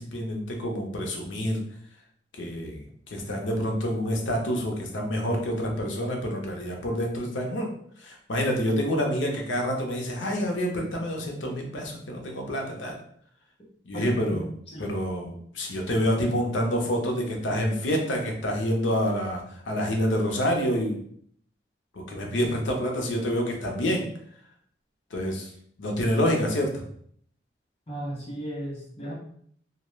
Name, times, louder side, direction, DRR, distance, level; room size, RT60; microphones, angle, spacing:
voice 1, 0.0-1.6 2.4-7.7 8.0-13.0 13.9-14.5 14.8-21.0 21.9-24.0 25.1-25.5 25.8-26.8, equal, 90° left, 2 dB, 0.6 m, -27 dB
voice 2, 13.9-14.8 27.9-29.1, right 1 dB, 30° left, -3 dB, 0.7 m, -35 dB
2.3 x 2.1 x 3.0 m, 0.62 s
head